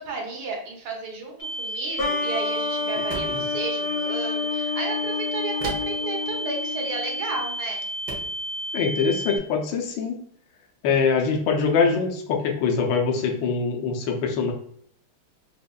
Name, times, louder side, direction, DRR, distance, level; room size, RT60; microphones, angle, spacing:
voice 1, 0.0-7.8, right 4 dB, 85° right, 0 dB, 1.8 m, -33 dB
sound 1, 1.4-9.4, equal, 85° left, 2.3 m, -32 dB
sound 2, 2.0-7.4, left 5 dB, 40° left, 0.9 m, -30 dB
sound 3, 3.1-3.5 5.6-6.1 7.4-7.5 8.1-8.4, right 2 dB, 65° right, 1.4 m, -35 dB
voice 2, 8.7-10.2 10.8-14.5, left 5 dB, 70° left, 2 dB, 1.3 m, -23 dB
5.1 x 2.0 x 2.3 m, 0.65 s
omnidirectional pair, 2.4 m